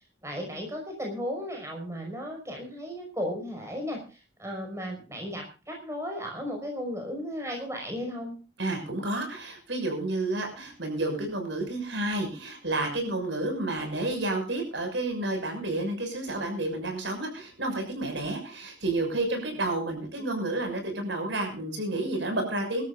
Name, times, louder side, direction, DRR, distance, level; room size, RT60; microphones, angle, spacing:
voice 1, 0.2-8.3, equal, 15° right, 1 dB, 5.5 m, -35 dB
voice 2, 8.6-22.8, right 2 dB, 80° right, 4 dB, 6.2 m, -30 dB
25.0 x 13.0 x 2.6 m, 0.34 s
head